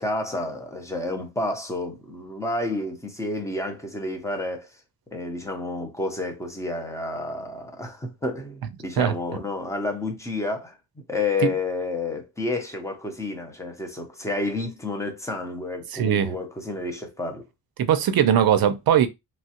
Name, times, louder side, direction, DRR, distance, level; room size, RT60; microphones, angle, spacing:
voice 1, 0.0-4.7 5.1-10.8 11.1-17.4, left 2 dB, 5° left, 0.6 m, -30 dB
voice 2, 15.9-16.3 17.8-19.1, right 9 dB, 60° right, 0.5 m, -20 dB
3.0 x 2.3 x 2.8 m
wide cardioid pair, 170°, 42 cm